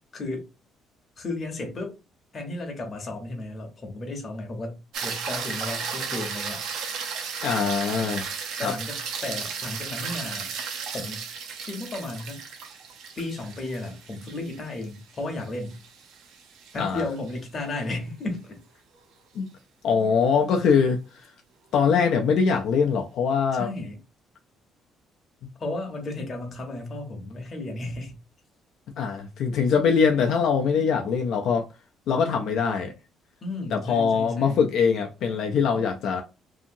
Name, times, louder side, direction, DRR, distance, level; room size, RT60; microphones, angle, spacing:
voice 1, 0.1-0.4 1.2-1.9 2.3-6.6 7.0-7.2 8.6-10.5 10.9-11.3 11.6-12.4 13.2-15.8 16.7-18.6 23.5-24.0 25.6-28.2 33.4-34.6, left 2 dB, 30° left, 0.8 m, -34 dB
sound 1, 4.9-17.3 21.8-21.9, right 6 dB, 75° right, 0.7 m, -34 dB
voice 2, 7.4-8.3 8.6-8.7 16.8-17.0 19.4-19.5 19.8-21.3 21.7-23.7 29.0-31.6 32.1-32.9 33.7-36.2, left 6 dB, 60° left, 0.4 m, -23 dB
2.7 x 2.6 x 2.6 m
cardioid pair, 170°, 0 cm